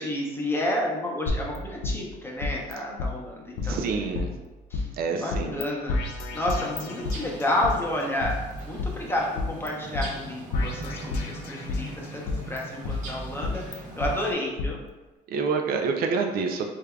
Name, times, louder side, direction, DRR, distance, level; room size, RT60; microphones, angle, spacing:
voice 1, 0.0-3.8 4.7-6.0 6.3-14.8, left 1 dB, 15° left, -2 dB, 0.7 m, -30 dB
sound 1, 1.3-2.7 3.0-3.1 3.6-4.8 5.3-5.6 5.9-7.7 8.2-9.7 9.9-10.1 10.5-11.9 12.3-14.1 14.6-14.7, left 3 dB, 90° left, 0.5 m, -31 dB
voice 2, 3.6-4.3 5.0-5.6 15.3-16.7, right 5 dB, 65° right, 4 dB, 0.4 m, -27 dB
sound 2, 6.6-14.3, right 2 dB, 50° right, 0.8 m, -41 dB
3.7 x 3.3 x 2.2 m, 1.1 s
cardioid pair, 110°, 17 cm